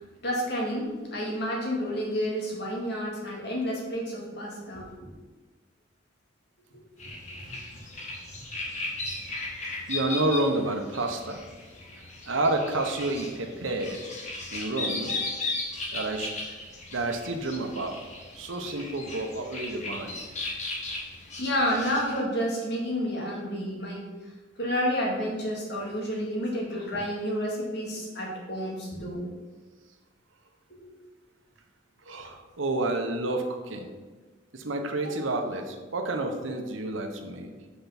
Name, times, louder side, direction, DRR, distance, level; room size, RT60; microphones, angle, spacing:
voice 1, 0.2-4.9 6.7-7.1 7.5-7.6 15.1-15.2 16.0-16.1 21.4-24.1 24.6-29.3 30.8-30.9 35.0-35.2, equal, 60° left, -3 dB, 2.3 m, -30 dB
sound 1, 7.0-22.2, left 2 dB, 35° left, 1.5 m, -37 dB
voice 2, 9.9-11.4 12.3-14.0 14.5-15.1 15.9-16.3 16.9-18.0 18.3-20.2 32.1-33.9 34.5-37.5, right 2 dB, 90° right, 4 dB, 1.1 m, -29 dB
5.7 x 5.6 x 5.9 m, 1.3 s
head